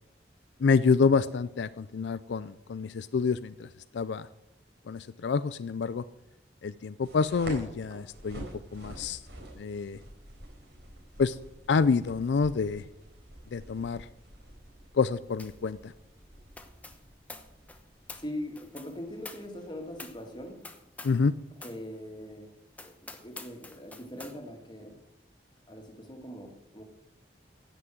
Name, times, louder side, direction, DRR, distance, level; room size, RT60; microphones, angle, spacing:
voice 1, 0.6-4.3 4.9-6.0 6.6-9.2 9.6-10.0 11.2-11.4 11.7-12.9 13.5-14.1 14.9-15.9 21.0-21.3, left 5 dB, 80° left, 15 dB, 0.4 m, -27 dB
sound 1, 7.0-20.5, right 1 dB, 70° right, 3.9 m, -48 dB
sound 2, 15.4-15.7 15.9-21.3 21.6-21.8 22.3-22.4 22.7-24.4, left 2 dB, 10° left, 0.9 m, -48 dB
voice 2, 18.2-20.7 21.6-25.0 25.7-26.8, left 1 dB, 25° left, 3 dB, 2.1 m, -41 dB
16.0 x 6.1 x 7.8 m, 0.85 s
head